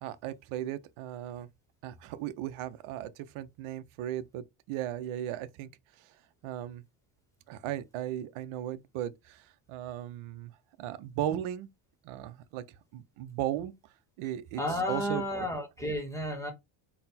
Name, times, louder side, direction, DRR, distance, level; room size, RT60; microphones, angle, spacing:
voice 1, 0.0-1.5 1.8-5.7 6.4-6.8 7.5-10.5 10.8-11.7 12.0-12.6 12.9-13.7 14.2-14.6 14.9-15.2, right 12 dB, 75° right, 0.6 m, -36 dB
voice 2, 14.6-16.5, left 1 dB, 5° left, 0.8 m, -32 dB
4.0 x 2.1 x 4.0 m
cardioid pair, 160°, 49 cm